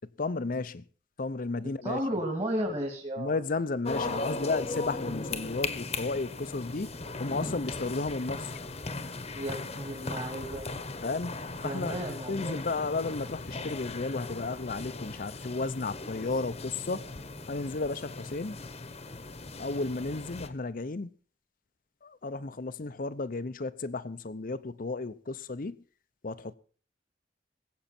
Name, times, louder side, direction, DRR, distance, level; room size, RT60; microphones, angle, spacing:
voice 1, 0.2-0.8 1.2-2.0 3.2-6.9 7.2-8.5 11.0-11.4 11.6-12.0 12.3-17.1 17.5-18.6 19.6-21.1 22.0-25.8 26.2-26.5, left 3 dB, 50° left, 0.7 m, -33 dB
voice 2, 1.8-3.3 9.3-10.7 11.6-12.6, right 1 dB, 30° right, 2.9 m, -33 dB
sound 1, 3.8-20.5, left 3 dB, 35° left, 1.1 m, -38 dB
21.0 x 8.5 x 4.3 m
head